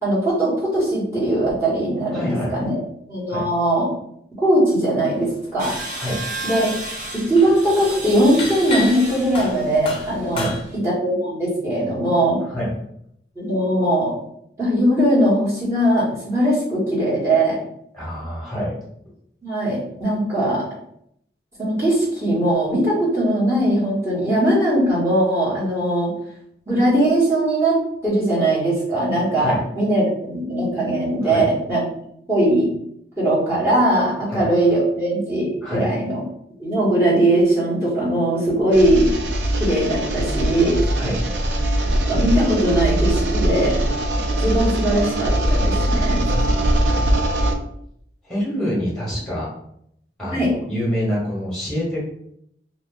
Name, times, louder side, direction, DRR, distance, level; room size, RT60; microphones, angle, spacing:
voice 1, 0.0-2.8 3.1-3.9 4.4-5.7 6.4-6.7 7.1-10.5 10.8-12.4 13.3-14.1 14.6-17.6 19.4-20.6 21.6-26.1 26.7-27.8 28.0-31.8 32.3-32.7 33.2-36.2 36.6-39.1 39.6-40.8 42.1-43.7 44.4-46.2 50.3-50.5, right 1 dB, 15° right, -8 dB, 1.4 m, -20 dB
voice 2, 2.1-2.5 3.3-3.5 5.9-6.2 10.3-10.6 12.5-12.7 17.9-18.8 29.4-29.7 31.2-31.5 34.3-34.5 35.6-35.9 40.9-41.2 46.1-46.7 48.2-49.5 50.2-52.0, equal, 5° left, -6 dB, 1.4 m, -26 dB
sound 1, 5.5-6.0 6.3-10.6, left 3 dB, 30° left, 0.5 m, -32 dB
sound 2, 5.6-10.8, right 2 dB, 45° right, 0.7 m, -33 dB
sound 3, 38.7-47.5, right 1 dB, 80° right, 0.5 m, -21 dB
2.6 x 2.6 x 3.8 m, 0.72 s
head